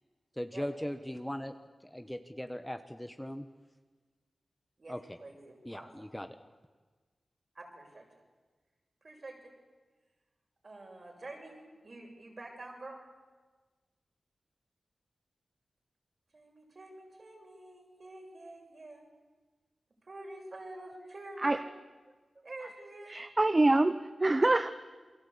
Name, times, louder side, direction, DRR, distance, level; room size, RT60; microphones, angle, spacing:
voice 1, 0.4-1.5 1.8-3.5 4.9-5.0 5.6-6.3, equal, 5° left, 8 dB, 1.1 m, -39 dB
voice 2, 4.8-6.1 7.6-8.2 9.0-9.5 10.6-11.5 11.8-13.0 16.3-19.0 20.0-21.6 22.4-23.2, right 2 dB, 50° right, 1 dB, 6.9 m, -48 dB
voice 3, 23.1-24.7, right 2 dB, 30° right, 11 dB, 0.8 m, -25 dB
28.0 x 23.5 x 8.5 m, 1.3 s
wide cardioid pair, 100°, 0 cm